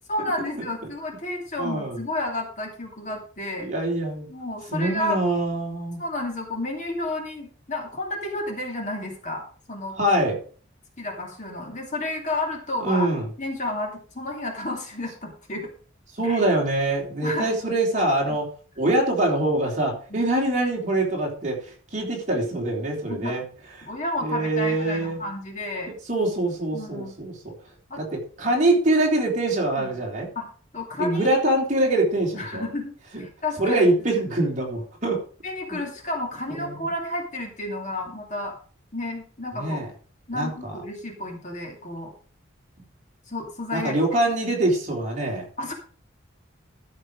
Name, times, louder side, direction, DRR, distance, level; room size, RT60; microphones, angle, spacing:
voice 1, 0.1-3.7 4.3-5.2 6.0-10.0 11.0-13.1 13.4-15.7 16.2-16.4 17.2-17.5 20.1-20.3 23.1-23.4 23.9-25.9 26.7-27.1 27.9-28.0 29.8-29.9 30.4-31.4 32.4-33.9 35.4-38.6 38.9-39.8 40.3-42.1 43.3-44.0 45.6-45.7, left 1 dB, 35° left, 1 dB, 2.5 m, -31 dB
voice 2, 1.6-2.0 3.6-4.3 4.7-6.0 10.0-10.4 12.8-13.3 16.2-18.5 18.8-23.4 24.2-25.2 25.9-27.5 28.0-30.3 31.0-32.6 33.1-33.2 33.6-35.2 35.7-35.8 36.5-36.8 39.5-39.9 40.3-40.8 43.7-45.5, right 1 dB, 35° right, -2 dB, 3.6 m, -24 dB
13.0 x 6.6 x 5.0 m, 0.42 s
head